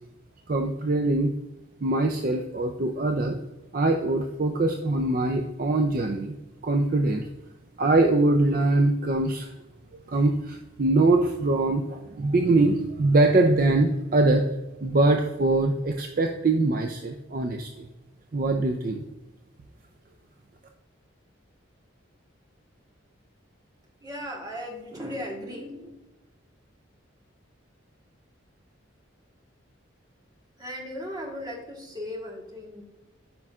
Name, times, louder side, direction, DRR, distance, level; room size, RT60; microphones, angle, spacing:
voice 1, 0.5-1.3 1.8-3.4 3.7-6.3 6.6-7.3 7.8-9.5 10.1-14.4 14.8-17.9 18.3-19.0, right 2 dB, 45° right, 4 dB, 0.4 m, -23 dB
voice 2, 24.0-25.9 30.6-32.8, equal, 20° right, -1 dB, 1.3 m, -36 dB
8.8 x 5.4 x 2.4 m, 1.0 s
head